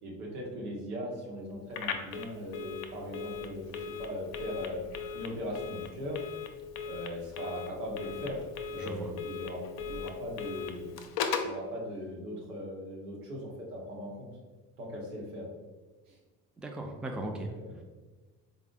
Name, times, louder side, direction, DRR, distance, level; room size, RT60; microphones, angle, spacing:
voice 1, 0.0-4.8 5.1-6.2 6.8-9.6 9.9-10.9 11.4-14.3 14.8-15.5 16.1-16.2 17.3-17.7, equal, 85° right, -2 dB, 0.8 m, -39 dB
Telephone, 1.7-11.6, left 6 dB, 55° left, 0.5 m, -38 dB
voice 2, 8.8-9.1 16.6-17.5, right 2 dB, ahead, 2 dB, 0.4 m, -37 dB
3.9 x 2.0 x 3.6 m, 1.3 s
hypercardioid pair, 50°, 44 cm